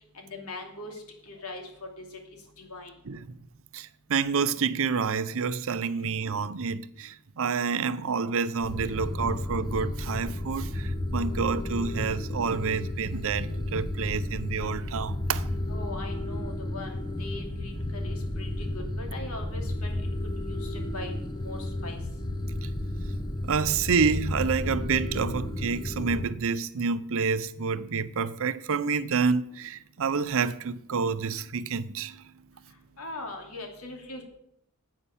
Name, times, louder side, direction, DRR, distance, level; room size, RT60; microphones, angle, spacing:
voice 1, 0.1-0.9 1.3-1.6 2.0-2.1 2.6-2.9 15.7-19.9 20.5-21.1 21.4-22.0 33.0-34.2, left 2 dB, 75° left, 2.7 m, -40 dB
voice 2, 3.0-3.4 3.7-15.5 22.6-22.7 23.4-32.2, right 5 dB, 65° right, 0.6 m, -28 dB
sound 1, 8.6-26.4, left 1 dB, 20° left, 0.9 m, -32 dB
9.8 x 8.5 x 7.2 m
head